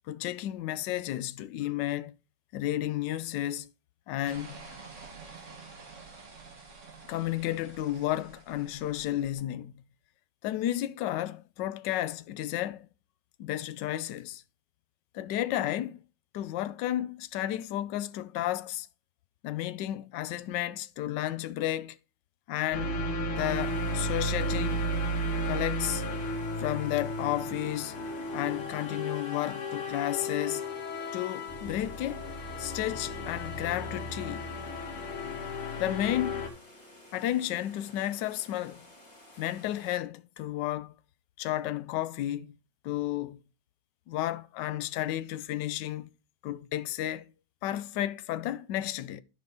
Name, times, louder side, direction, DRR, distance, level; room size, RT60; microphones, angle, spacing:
voice 1, 0.1-2.1 2.5-3.7 4.1-4.6 7.1-9.7 10.4-12.9 13.4-14.4 15.1-16.0 16.3-18.9 19.4-22.0 22.5-23.0 23.4-24.8 25.4-26.0 26.6-28.0 28.3-30.6 31.1-32.2 32.6-34.5 35.8-36.4 37.1-38.8 39.4-40.9 41.4-42.5 42.8-43.4 44.1-46.1 46.4-47.3 47.6-49.2, left 13 dB, 70° left, 1.1 m, -32 dB
sound 1, 4.2-9.3, right 4 dB, 40° right, 1.8 m, -49 dB
sound 2, 22.7-36.5, equal, 90° left, 2.1 m, -34 dB
sound 3, 23.3-40.0, left 1 dB, 15° left, 2.5 m, -54 dB
12.0 x 5.1 x 4.0 m
omnidirectional pair, 2.3 m